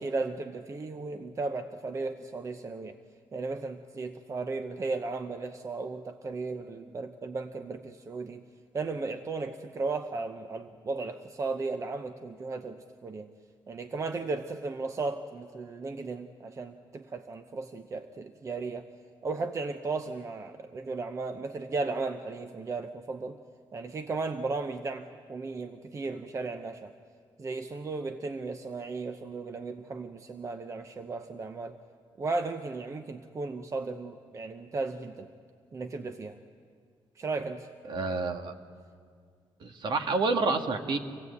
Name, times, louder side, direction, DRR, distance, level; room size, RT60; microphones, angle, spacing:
voice 1, 0.0-3.0 3.3-8.4 8.7-13.3 13.7-18.9 19.2-23.4 23.7-26.9 27.4-31.8 32.2-35.3 35.7-36.4 37.2-37.7, right 3 dB, 35° right, 8 dB, 0.8 m, -35 dB
voice 2, 37.9-38.5 39.6-41.0, right 3 dB, 60° right, 5 dB, 1.7 m, -28 dB
26.0 x 17.0 x 8.2 m, 2.1 s
cardioid pair, 120°, 9 cm